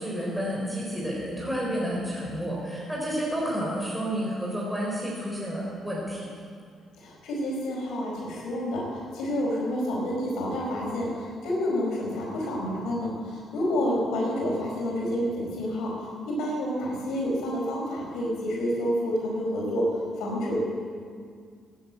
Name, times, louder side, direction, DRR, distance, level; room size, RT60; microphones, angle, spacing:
voice 1, 0.0-6.3, equal, ahead, -5 dB, 4.2 m, -30 dB
voice 2, 7.0-20.6, equal, 80° left, -3 dB, 4.7 m, -29 dB
14.5 x 9.9 x 8.4 m, 2.1 s
cardioid pair, 90°, 0 cm